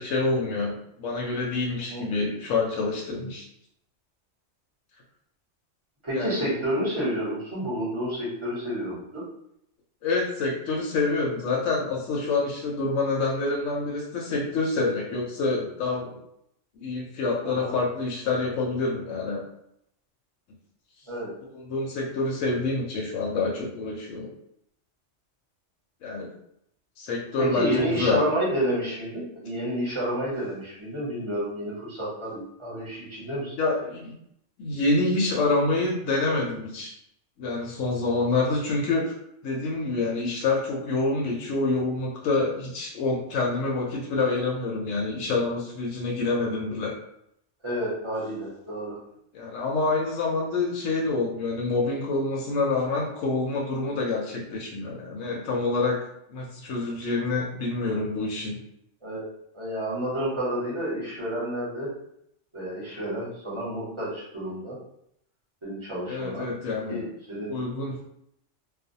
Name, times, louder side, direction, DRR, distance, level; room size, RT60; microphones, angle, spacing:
voice 1, 0.0-3.4 6.1-6.5 10.0-16.2 16.8-19.4 21.5-24.3 26.0-26.3 27.0-28.2 33.6-34.1 34.6-36.9 37.4-39.1 39.4-46.9 49.3-56.0 56.3-58.6 66.1-67.0 67.5-68.0, left 3 dB, 85° left, -2 dB, 0.9 m, -27 dB
voice 2, 6.0-9.2 17.4-17.7 21.1-21.3 27.4-33.5 47.6-49.0 59.0-59.2 59.5-61.9 62.5-64.8 65.6-66.4 66.9-67.5, equal, 25° right, -7 dB, 1.0 m, -30 dB
2.4 x 2.2 x 2.6 m, 0.76 s
omnidirectional pair, 1.3 m